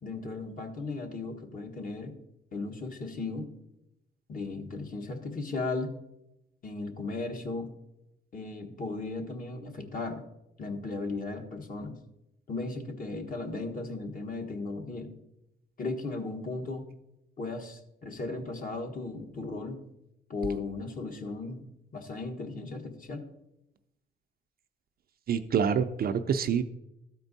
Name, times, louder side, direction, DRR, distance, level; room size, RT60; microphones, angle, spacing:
voice 1, 0.0-2.1 2.5-3.5 4.3-5.9 6.6-7.7 8.3-10.2 10.6-12.0 12.5-15.1 15.8-16.9 17.4-19.8 20.3-21.6 21.9-23.2, left 3 dB, 45° left, 3 dB, 1.4 m, -36 dB
voice 2, 25.3-26.6, right 7 dB, 50° right, 9 dB, 0.5 m, -26 dB
13.0 x 4.5 x 4.1 m, 0.88 s
cardioid pair, 90°, 20 cm